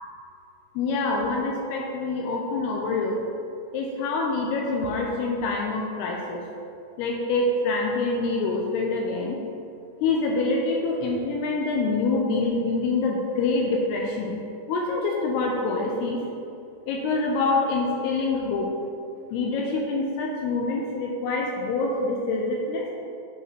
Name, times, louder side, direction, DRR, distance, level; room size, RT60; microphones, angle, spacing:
voice 1, 0.8-3.2 3.7-6.4 7.0-9.4 10.0-14.4 14.7-16.2 16.9-18.7 19.3-22.9, left 3 dB, 80° left, -1 dB, 2.4 m, -26 dB
8.0 x 5.6 x 3.1 m, 2.6 s
omnidirectional pair, 5.1 m